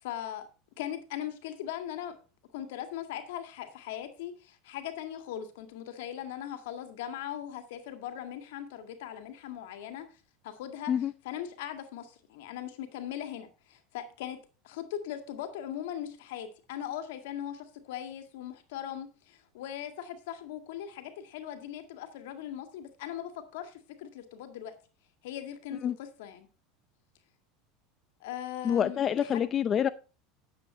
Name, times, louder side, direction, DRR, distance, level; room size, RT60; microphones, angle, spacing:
voice 1, 0.0-0.5 0.8-2.2 2.5-10.2 10.4-10.9 11.2-24.7 25.2-26.5 28.2-29.5, left 10 dB, 80° left, 2.0 m, -39 dB
voice 2, 28.6-29.9, left 9 dB, 35° left, 0.5 m, -27 dB
10.0 x 7.7 x 4.4 m
supercardioid pair, 110°, 0 cm